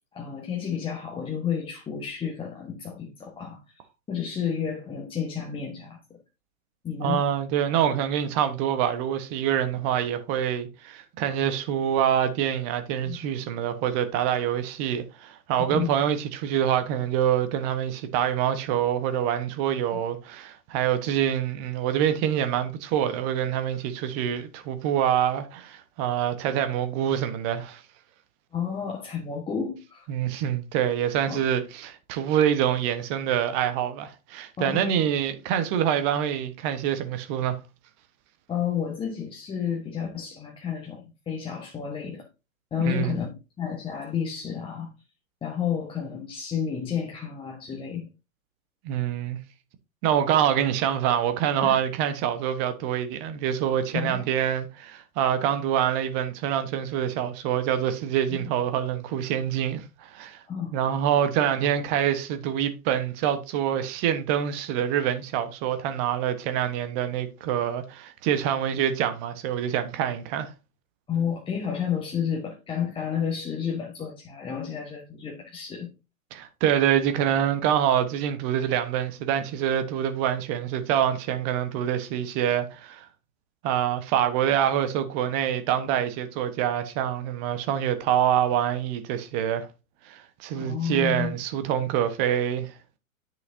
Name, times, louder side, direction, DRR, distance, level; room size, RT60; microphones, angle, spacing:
voice 1, 0.1-3.6 4.1-6.2 6.8-7.2 13.0-13.3 15.6-15.9 19.9-20.0 28.5-30.1 31.3-31.5 34.6-35.1 38.5-42.2 42.7-43.3 43.6-44.9 45.4-48.1 51.6-51.8 53.9-54.2 58.3-58.5 60.5-60.7 71.1-75.9 90.5-91.3, left 7 dB, 10° left, 1.3 m, -31 dB
voice 2, 7.0-27.8 30.1-37.6 42.8-43.1 48.8-49.4 50.0-60.4 60.7-70.5 76.3-83.1 83.6-89.7 90.0-92.7, right 10 dB, 30° right, 1.1 m, -26 dB
10.5 x 6.2 x 2.6 m
figure-of-eight pair, 115°, 42 cm